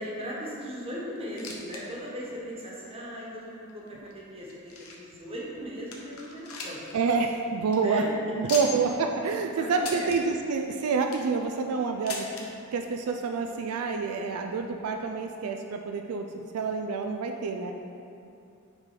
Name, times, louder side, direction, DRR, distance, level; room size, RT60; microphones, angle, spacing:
voice 1, 0.0-6.8 7.7-8.1 9.5-10.1, equal, 25° right, -5 dB, 1.2 m, -38 dB
sound 1, 1.2-1.8 2.1-2.2 2.9-3.0 3.7-5.2 5.6-5.7 5.9-6.9 7.2-7.3 7.6-7.8 8.5-9.0 9.8-10.2 10.8-11.3 12.1-12.5 13.4-13.5 13.7-13.8 14.6-14.7, left 4 dB, 70° left, 0.9 m, -38 dB
voice 2, 6.9-8.0 8.4-12.5 12.7-17.7, right 4 dB, 80° right, 4 dB, 0.4 m, -28 dB
7.3 x 3.8 x 4.9 m, 2.6 s
head